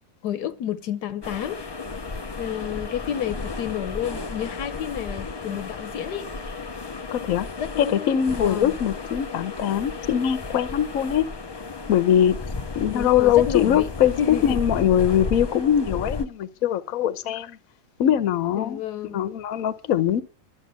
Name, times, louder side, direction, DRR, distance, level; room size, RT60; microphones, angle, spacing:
voice 1, 0.2-1.6 2.4-6.3 7.6-8.8 12.8-13.9 14.2-14.6 17.3-17.4 18.6-19.2, left 10 dB, 90° left, 1.4 m, -30 dB
sound 1, 1.2-16.3, left 3 dB, 40° left, 0.3 m, -33 dB
voice 2, 7.1-7.5 7.8-11.2 11.9-12.4 12.8-17.6 18.0-20.2, left 10 dB, 65° left, 1.2 m, -22 dB
12.0 x 7.5 x 8.1 m
omnidirectional pair, 1.7 m